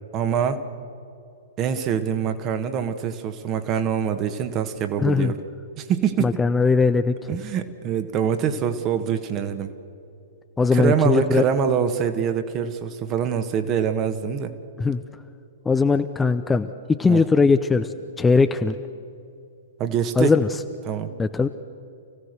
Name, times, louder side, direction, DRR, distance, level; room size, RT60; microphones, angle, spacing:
voice 1, 0.1-0.6 1.6-5.4 5.8-6.4 7.3-9.7 10.7-14.5 17.1-17.2 19.8-20.3 20.9-21.1, right 8 dB, 30° right, 9 dB, 1.4 m, -24 dB
voice 2, 5.0-5.3 6.2-7.4 10.6-11.4 14.8-15.0 15.7-17.9 18.2-18.8 20.2-20.5 21.2-21.5, left 4 dB, 10° left, 9 dB, 0.6 m, -20 dB
28.5 x 16.0 x 6.7 m, 2.6 s
figure-of-eight pair, 110°, 0 cm